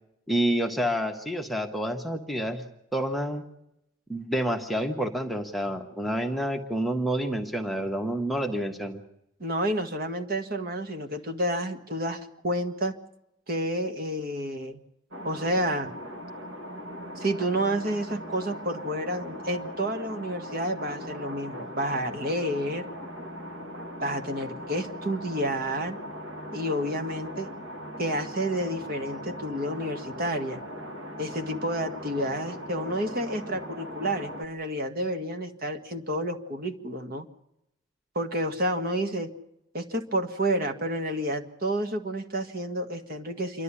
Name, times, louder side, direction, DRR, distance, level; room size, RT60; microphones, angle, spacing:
voice 1, 0.3-2.6 2.9-3.4 4.1-9.0, right 1 dB, ahead, 3 dB, 1.3 m, -28 dB
voice 2, 9.4-12.9 13.5-14.8 15.2-15.9 17.2-22.9 24.0-26.0 26.5-27.5 28.0-30.6 31.2-37.3 38.2-39.3 39.7-43.6, right 1 dB, 45° right, 6 dB, 1.8 m, -30 dB
sound 1, 15.1-34.4, equal, 65° right, 2.2 m, -39 dB
27.5 x 12.0 x 9.8 m, 0.82 s
head